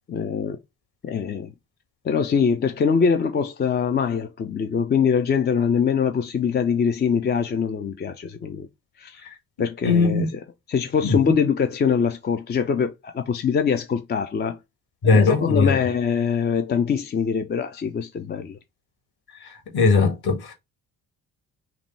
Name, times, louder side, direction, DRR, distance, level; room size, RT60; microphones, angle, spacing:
voice 1, 0.1-0.6 1.0-1.5 2.0-8.7 9.0-9.2 9.6-10.3 10.7-14.6 15.0-18.6, left 6 dB, 20° left, 0.5 m, -23 dB
voice 2, 9.8-10.3 11.0-11.2 15.0-15.8 19.7-20.5, left 4 dB, 50° left, 1.7 m, -19 dB
5.6 x 2.2 x 3.2 m
figure-of-eight pair, 40°, 49 cm